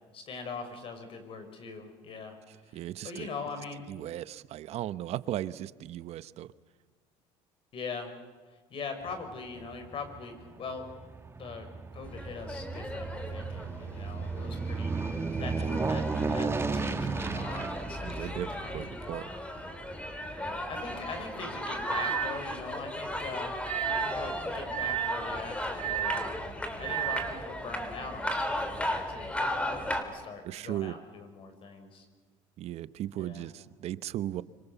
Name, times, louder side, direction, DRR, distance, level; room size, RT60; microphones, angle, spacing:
voice 1, 0.1-2.4 2.7-3.9 7.7-8.1 8.7-10.9 11.4-11.7 11.9-15.0 15.4-16.0 16.3-18.9 20.4-23.6 24.0-29.4 29.9-32.1 33.2-33.5, left 4 dB, 45° left, 7 dB, 5.7 m, -42 dB
voice 2, 2.7-3.3 3.9-6.5 15.7-15.9 18.0-19.3 30.4-31.0 32.6-34.4, right 13 dB, 60° right, 16 dB, 0.9 m, -36 dB
Aircraft, 9.0-21.6 22.0-22.1, right 4 dB, 20° right, 1.7 m, -35 dB
sound 1, 12.0-30.0, left 1 dB, 10° left, 3.5 m, -36 dB
sound 2, 20.4-20.5 21.9-22.4 23.6-24.2 24.7-25.2 25.8-26.3 26.8-27.3, right 16 dB, 75° right, 1.2 m, -32 dB
25.5 x 25.5 x 7.1 m, 1.4 s
supercardioid pair, 100°, 12 cm